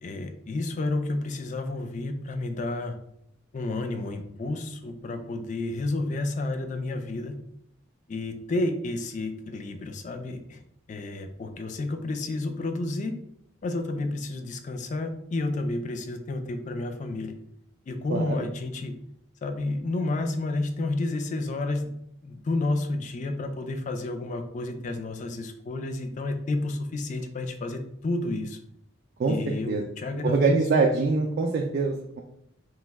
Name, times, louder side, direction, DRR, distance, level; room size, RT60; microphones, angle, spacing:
voice 1, 0.0-3.0 3.5-7.4 8.1-10.6 10.9-13.1 13.6-17.3 17.9-18.9 19.4-21.9 22.2-28.6 29.3-30.6, left 2 dB, 40° left, 6 dB, 0.3 m, -31 dB
voice 2, 18.1-18.5 29.2-29.3 29.7-29.8 30.2-32.2, right 3 dB, 50° right, 1 dB, 0.3 m, -24 dB
3.0 x 2.1 x 3.3 m, 0.74 s
head